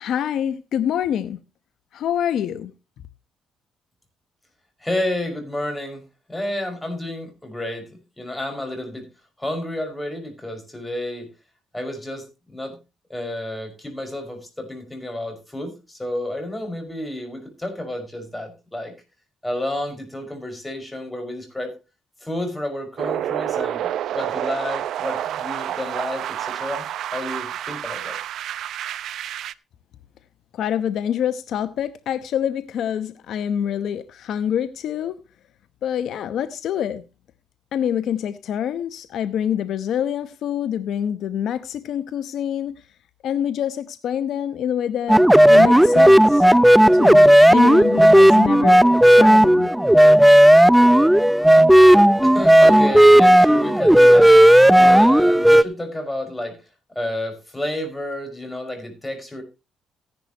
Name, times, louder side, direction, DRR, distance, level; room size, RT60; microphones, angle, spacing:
voice 1, 0.0-1.4 1.9-2.7 30.5-35.2 35.8-37.0 37.7-42.7 43.2-46.4 46.9-48.8 49.1-49.7, left 9 dB, 75° left, 0.9 m, -26 dB
voice 2, 4.8-6.0 6.3-9.1 9.4-11.3 11.7-12.8 13.1-18.9 19.4-21.8 22.2-26.9 27.1-28.2 52.2-54.4 54.7-56.6 57.0-59.4, left 1 dB, 10° left, 5.6 m, -30 dB
sound 1, 23.0-29.5, right 11 dB, 75° right, 0.6 m, -28 dB
sound 2, 45.1-55.6, right 1 dB, 5° right, 0.6 m, -12 dB
15.5 x 11.0 x 3.0 m
cardioid pair, 90°, 0 cm